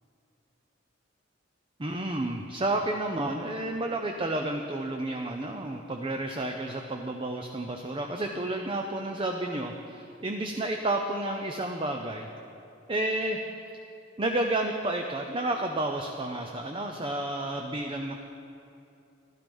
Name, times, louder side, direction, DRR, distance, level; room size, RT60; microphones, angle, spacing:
voice 1, 1.8-12.3 12.9-13.4 14.2-18.1, right 1 dB, 25° right, 3 dB, 0.6 m, -31 dB
12.5 x 12.0 x 5.4 m, 2.7 s
head